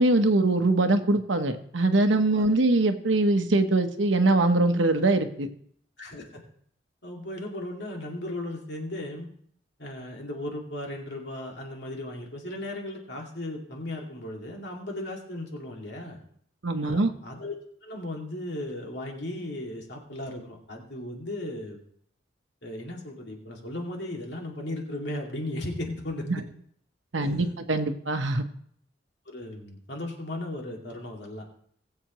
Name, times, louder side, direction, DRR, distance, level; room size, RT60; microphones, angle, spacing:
voice 1, 0.0-5.5 16.6-17.1 26.3-26.4 27.1-28.4, right 2 dB, 85° right, 7 dB, 1.1 m, -23 dB
voice 2, 6.0-6.4 7.0-9.3 9.8-16.2 16.8-17.5 17.8-21.8 22.6-26.3 27.2-27.5 29.3-31.4, left 1 dB, 65° left, 0 dB, 2.4 m, -36 dB
19.5 x 7.9 x 3.1 m, 0.64 s
head